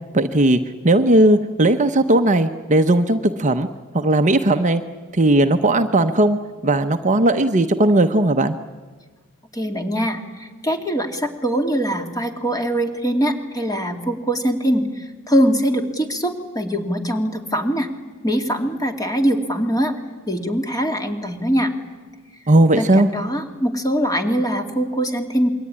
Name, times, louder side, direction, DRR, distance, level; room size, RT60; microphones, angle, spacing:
voice 1, 0.1-0.6 0.8-3.7 3.9-4.8 5.1-6.4 6.6-8.5 22.5-23.1, right 1 dB, 35° right, 7 dB, 0.9 m, -16 dB
voice 2, 9.5-17.9 18.2-19.9 20.3-21.7 22.7-25.5, equal, 15° left, 5 dB, 2.4 m, -22 dB
27.0 x 22.5 x 9.8 m, 1.4 s
head